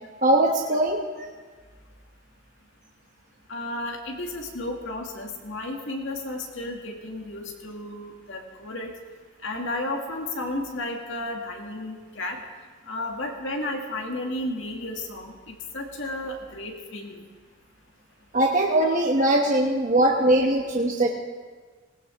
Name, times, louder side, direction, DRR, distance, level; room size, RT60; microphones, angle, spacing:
voice 1, 0.2-1.0 18.3-21.1, right 1 dB, 40° right, 0 dB, 1.0 m, -21 dB
voice 2, 3.5-8.9 9.4-12.4 12.9-17.2 19.2-19.3, left 1 dB, 60° left, 1 dB, 2.2 m, -33 dB
19.0 x 19.0 x 3.5 m, 1.5 s
head